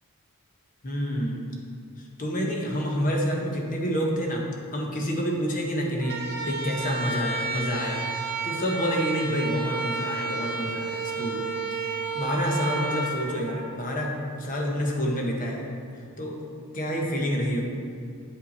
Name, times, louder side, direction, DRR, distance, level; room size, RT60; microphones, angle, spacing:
voice 1, 0.8-1.5 2.2-4.4 4.7-15.7 16.2-16.4 16.7-17.6, equal, 40° left, -1 dB, 1.1 m, -28 dB
sound 1, 6.0-14.1, right 4 dB, 50° right, 1.0 m, -31 dB
8.8 x 5.3 x 4.2 m, 2.4 s
head